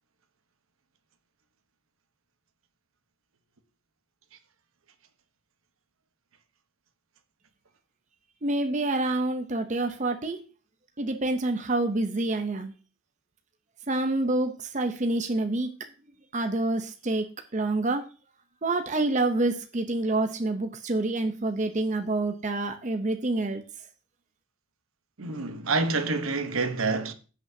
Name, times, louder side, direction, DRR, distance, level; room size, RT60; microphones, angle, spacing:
voice 1, 8.4-10.4 11.0-12.7 13.9-15.7 16.3-17.2 17.5-18.0 18.6-23.6, right 2 dB, 35° right, 0.7 m, -27 dB
voice 2, 25.2-27.1, right 3 dB, 75° right, 1.0 m, -27 dB
15.5 x 5.9 x 2.7 m
head